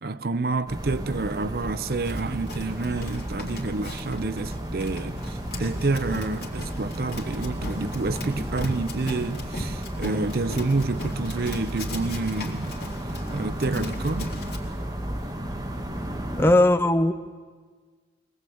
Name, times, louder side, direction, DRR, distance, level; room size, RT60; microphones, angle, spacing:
voice 1, 0.0-12.8 13.3-14.3, right 3 dB, 55° right, 0.6 m, -28 dB
sound 1, 0.7-16.5, right 1 dB, 20° right, 1.8 m, -33 dB
Run, 2.0-14.6, left 1 dB, 60° left, 3.4 m, -38 dB
voice 2, 16.4-17.1, left 1 dB, 15° left, 0.7 m, -18 dB
23.0 x 19.0 x 8.6 m
head